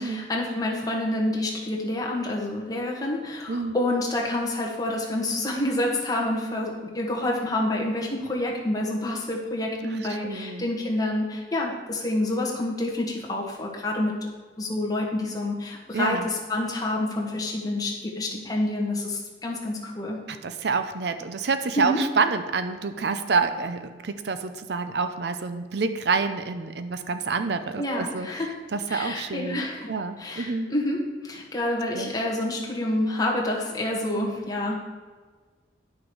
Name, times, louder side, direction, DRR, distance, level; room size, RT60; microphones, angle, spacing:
voice 1, 0.0-14.1 14.6-20.2 21.7-22.0 27.8-28.5 28.9-34.7, left 1 dB, 20° left, -2 dB, 1.5 m, -28 dB
voice 2, 10.2-10.7 15.9-16.3 20.3-28.3 28.7-30.7 31.9-32.1 34.1-34.3, right 4 dB, 65° right, 9 dB, 0.5 m, -28 dB
10.5 x 6.2 x 4.7 m, 1.5 s
head